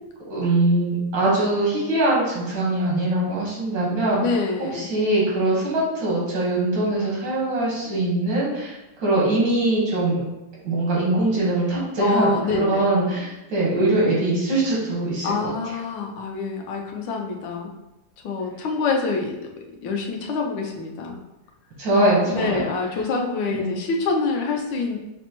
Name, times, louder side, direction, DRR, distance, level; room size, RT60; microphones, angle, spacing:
voice 1, 0.3-4.2 4.7-10.2 10.6-15.3 21.8-22.6 23.5-23.7, right 2 dB, 90° right, -5 dB, 2.0 m, -22 dB
voice 2, 4.2-4.9 7.8-8.0 12.0-12.9 15.2-17.7 18.2-19.4 19.8-21.2 22.3-25.0, left 4 dB, 85° left, 1 dB, 1.3 m, -26 dB
5.9 x 2.1 x 2.9 m, 0.97 s
omnidirectional pair, 1.9 m